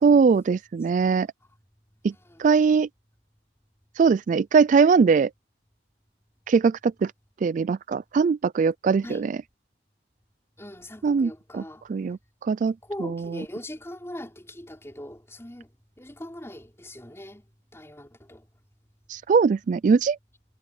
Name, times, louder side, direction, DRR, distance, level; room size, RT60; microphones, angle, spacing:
voice 1, 0.0-1.3 2.0-2.1 2.4-2.9 4.0-5.3 6.5-7.1 7.4-9.3 11.0-11.6 11.9-12.7 13.0-13.1 19.1-20.2, right 5 dB, 45° right, 0.3 m, -21 dB
voice 2, 2.0-2.4 9.0-9.3 10.6-12.1 12.8-18.5, left 1 dB, 15° left, 4.7 m, -41 dB
head